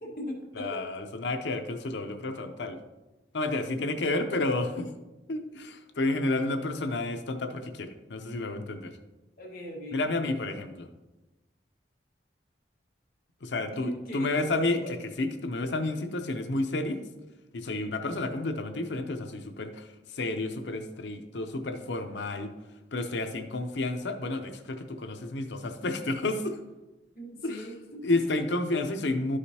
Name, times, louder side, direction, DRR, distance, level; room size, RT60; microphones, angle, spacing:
voice 1, 0.0-0.8 9.4-10.1 13.7-14.9 27.1-28.2, equal, 55° left, -2 dB, 1.6 m, -39 dB
voice 2, 0.5-2.8 3.3-4.9 5.3-9.0 9.9-10.9 13.4-14.8 15.2-17.0 17.5-22.5 22.9-26.6 27.4-27.7 28.0-29.4, left 2 dB, 80° left, 7 dB, 0.7 m, -31 dB
12.0 x 5.0 x 2.8 m, 1.1 s
head